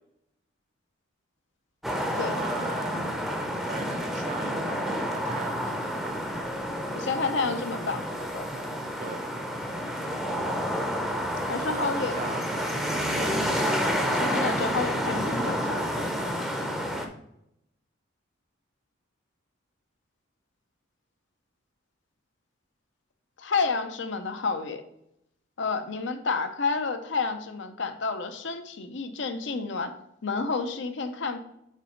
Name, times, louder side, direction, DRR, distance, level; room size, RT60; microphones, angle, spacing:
sound 1, 1.8-17.1, equal, ahead, 0.6 m, -29 dB
voice 1, 1.9-3.0 3.6-6.2 9.0-9.2 11.4-13.4 13.9-14.1, right 4 dB, 40° right, 7 dB, 0.4 m, -40 dB
voice 2, 6.9-8.1 8.3-8.4 11.5-12.1 14.1-15.9 23.4-24.8 25.6-29.9 30.2-31.4, left 4 dB, 65° left, 8 dB, 0.7 m, -30 dB
5.4 x 3.9 x 5.1 m, 0.79 s
head